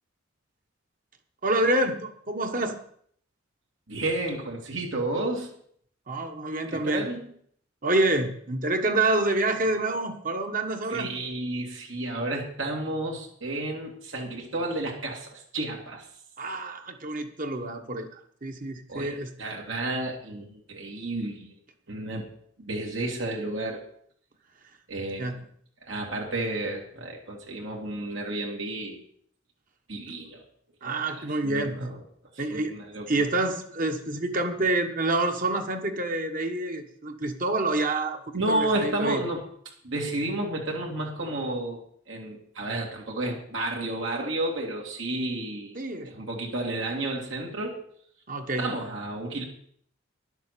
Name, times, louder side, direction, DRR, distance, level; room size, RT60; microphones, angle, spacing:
voice 1, 1.4-2.8 6.1-7.1 7.8-11.1 16.4-18.1 18.4-19.3 25.2-25.4 30.1-30.2 30.8-31.9 32.4-32.7 33.1-39.2 45.7-46.2 48.3-48.7, right 2 dB, 45° right, 5 dB, 1.4 m, -27 dB
voice 2, 3.9-5.5 6.7-7.2 10.9-16.1 18.9-21.5 21.9-22.3 22.6-23.8 24.9-25.4 25.8-29.0 29.9-30.4 30.8-32.0 32.5-33.3 38.3-39.4 39.8-45.8 46.0-47.8 48.6-49.4, right 2 dB, 75° right, -1 dB, 2.6 m, -31 dB
11.0 x 8.0 x 6.9 m, 0.63 s
head